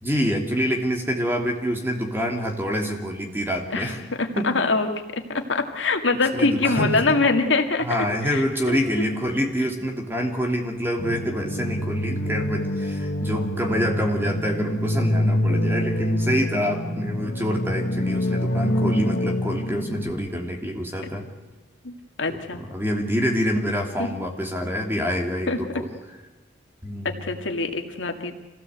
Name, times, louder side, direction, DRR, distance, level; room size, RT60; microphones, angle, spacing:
voice 1, 0.0-4.0 4.3-4.6 6.3-7.2 7.8-21.3 22.3-25.9 26.8-27.3, equal, 10° right, 2 dB, 2.8 m, -26 dB
voice 2, 4.2-8.0 8.3-8.8 21.8-21.9 22.2-22.6 24.0-24.1 25.5-25.6 27.0-28.3, left 3 dB, 80° left, 5 dB, 2.2 m, -24 dB
sound 1, 11.0-20.1, left 1 dB, 60° left, 1.8 m, -26 dB
26.0 x 17.0 x 8.1 m, 1.2 s
head